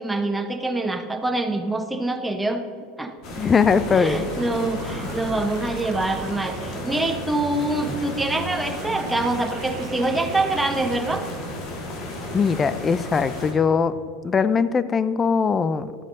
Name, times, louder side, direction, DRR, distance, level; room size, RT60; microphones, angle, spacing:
voice 1, 0.0-2.6 3.0-3.1 3.9-11.2, right 2 dB, 10° right, 6 dB, 1.1 m, -25 dB
sound 1, 3.2-13.5, left 1 dB, 50° left, 2.7 m, -34 dB
sound 2, 3.2-11.4, right 7 dB, 50° right, 0.8 m, -39 dB
voice 2, 3.4-4.3 12.3-13.9 14.2-15.9, left 5 dB, 25° left, 15 dB, 0.5 m, -20 dB
12.0 x 8.3 x 5.3 m, 2.3 s
supercardioid pair, 105°, 0 cm